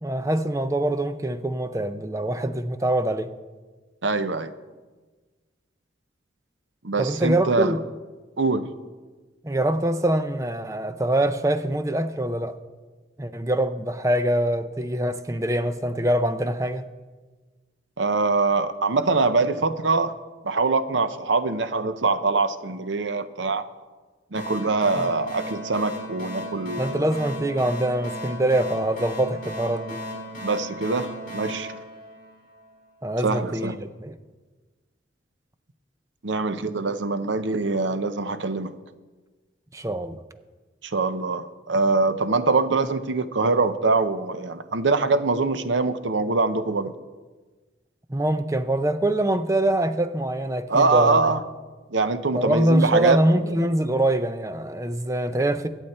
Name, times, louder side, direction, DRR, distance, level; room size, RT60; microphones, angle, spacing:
voice 1, 0.0-3.3 7.0-7.8 9.4-12.6 13.2-16.9 25.0-25.1 26.8-30.0 33.0-34.1 39.7-40.2 48.1-51.2 52.3-55.7, right 1 dB, 15° right, 0.6 m, -24 dB
voice 2, 4.0-4.5 6.8-7.8 8.4-8.7 18.0-20.1 20.4-23.6 24.3-27.0 30.4-31.7 33.2-33.7 36.2-38.7 40.8-46.9 50.7-51.4 51.9-53.2 53.4-53.6, right 3 dB, 85° right, 0.8 m, -23 dB
sound 1, 24.3-32.7, equal, 45° left, 4.0 m, -36 dB
23.0 x 8.2 x 4.3 m
head